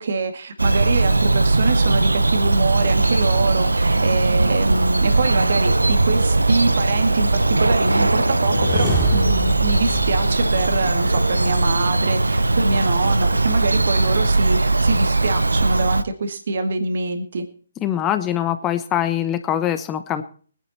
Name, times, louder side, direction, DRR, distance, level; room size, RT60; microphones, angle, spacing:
voice 1, 0.0-17.4, right 3 dB, 55° right, 7 dB, 2.1 m, -25 dB
Bird vocalization bird call bird song, 0.6-16.0, right 2 dB, 85° right, 0.7 m, -19 dB
sound 1, 8.2-11.5, right 2 dB, ahead, 3.4 m, -27 dB
voice 2, 17.8-20.2, left 11 dB, 20° left, 9 dB, 1.0 m, -23 dB
20.0 x 10.5 x 4.3 m, 0.43 s
figure-of-eight pair, 140°, 0 cm